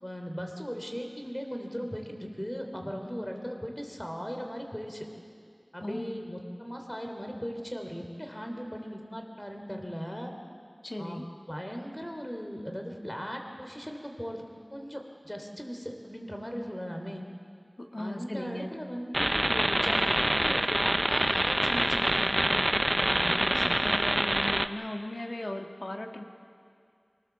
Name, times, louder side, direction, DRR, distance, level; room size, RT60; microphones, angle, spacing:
voice 1, 0.0-5.1 5.7-10.3 11.0-14.4 14.7-17.2 18.0-23.7, equal, 15° left, 3 dB, 3.2 m, -38 dB
voice 2, 5.8-6.2 10.8-11.3 17.8-18.7 23.3-26.2, left 1 dB, 70° left, 3 dB, 1.7 m, -38 dB
sound 1, 19.1-24.7, right 1 dB, 25° right, 0.7 m, -26 dB
24.5 x 18.5 x 7.3 m, 2.3 s
wide cardioid pair, 40°, 0 cm